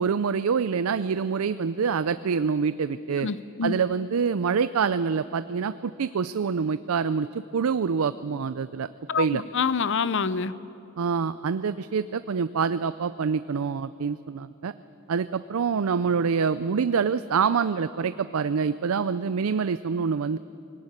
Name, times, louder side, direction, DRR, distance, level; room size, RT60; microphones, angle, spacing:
voice 1, 0.0-3.3 3.6-8.9 9.2-9.4 11.0-14.7 15.1-20.4, right 6 dB, 90° right, 14 dB, 0.5 m, -26 dB
voice 2, 3.2-3.8 9.1-10.5, left 5 dB, 60° left, 16 dB, 0.7 m, -26 dB
19.5 x 18.0 x 9.8 m, 2.8 s
head